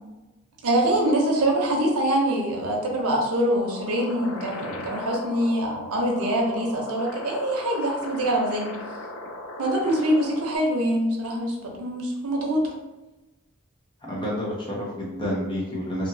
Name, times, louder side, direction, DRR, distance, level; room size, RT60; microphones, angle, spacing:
voice 1, 0.6-8.7 9.6-12.7, right 1 dB, 90° right, 0 dB, 0.7 m, -24 dB
sound 1, 3.6-10.6, left 1 dB, 75° left, 0.4 m, -38 dB
voice 2, 14.1-16.1, equal, 20° left, -4 dB, 0.6 m, -29 dB
2.8 x 2.4 x 2.6 m, 1.1 s
head